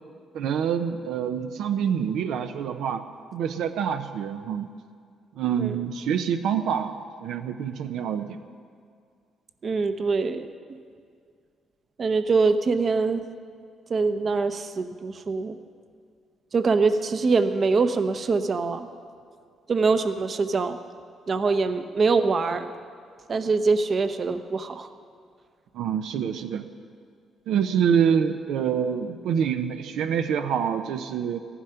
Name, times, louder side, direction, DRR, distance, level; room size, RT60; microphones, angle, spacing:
voice 1, 0.3-3.1 3.3-4.7 5.4-8.4 25.7-26.7 27.5-31.4, right 8 dB, 85° right, 8 dB, 0.6 m, -26 dB
voice 2, 9.6-10.5 12.0-13.2 13.9-15.5 16.5-18.9 19.7-20.8 21.3-22.6 23.3-24.9, right 4 dB, 45° right, 10 dB, 0.8 m, -23 dB
14.5 x 11.0 x 5.7 m, 2.2 s
cardioid pair, 90°, 0 cm